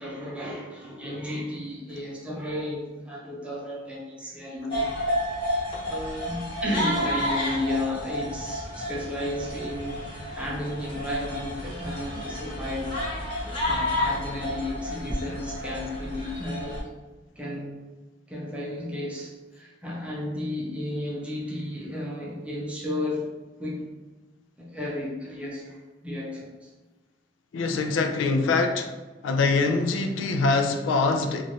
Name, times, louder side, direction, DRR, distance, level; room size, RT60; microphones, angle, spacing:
voice 1, 0.0-4.9 5.8-13.0 13.7-16.9 17.4-17.8 18.3-23.3 23.6-23.9 24.6-26.7, left 1 dB, 5° right, -4 dB, 0.5 m, -33 dB
sound 1, 4.7-16.8, left 1 dB, 30° left, 0.8 m, -31 dB
voice 2, 27.5-28.9 29.2-31.4, left 3 dB, 85° left, 5 dB, 0.3 m, -24 dB
3.0 x 2.4 x 2.7 m, 1.2 s
head